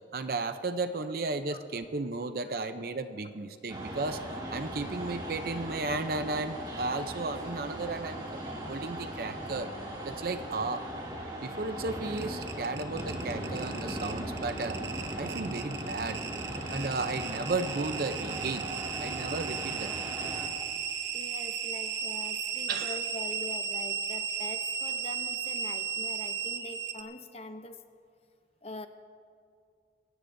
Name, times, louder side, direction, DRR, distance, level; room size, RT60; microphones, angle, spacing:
voice 1, 0.1-4.2 4.5-8.2 8.7-9.7 10.0-10.8 11.4-14.8 15.2-16.2 16.7-18.7 19.0-19.9 22.7-23.0, right 3 dB, 55° right, 9 dB, 0.6 m, -34 dB
sound 1, 3.7-20.5, right 1 dB, 25° right, 2.1 m, -38 dB
sound 2, 12.1-27.0, right 7 dB, 75° right, 1.0 m, -35 dB
voice 2, 21.1-27.8 28.6-28.9, left 2 dB, 35° left, 8 dB, 0.7 m, -43 dB
23.5 x 16.5 x 2.6 m, 2.3 s
head